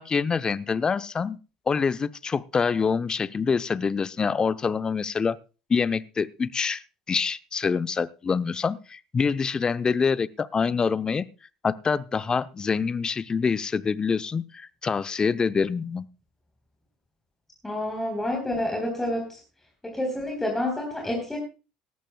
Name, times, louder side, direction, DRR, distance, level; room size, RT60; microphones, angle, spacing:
voice 1, 0.0-1.4 1.7-5.4 5.7-6.8 7.1-11.3 11.6-16.1, left 5 dB, 25° left, 15 dB, 0.6 m, -26 dB
voice 2, 17.6-19.4 19.8-21.4, left 1 dB, 10° left, 2 dB, 4.1 m, -28 dB
18.5 x 14.0 x 2.3 m, 0.32 s
hypercardioid pair, 70°, 3 cm